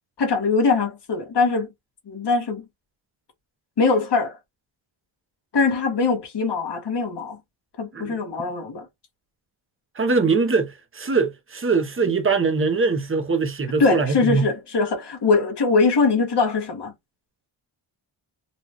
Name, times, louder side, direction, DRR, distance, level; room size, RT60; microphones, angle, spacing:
voice 1, 0.2-1.7 2.1-2.6 3.8-4.4 5.5-7.4 7.8-8.9 13.8-16.9, left 4 dB, 55° left, 1.7 m, -22 dB
voice 2, 9.9-14.5, right 4 dB, 25° right, 0.8 m, -22 dB
4.0 x 2.4 x 2.9 m
wide cardioid pair, 110°, 48 cm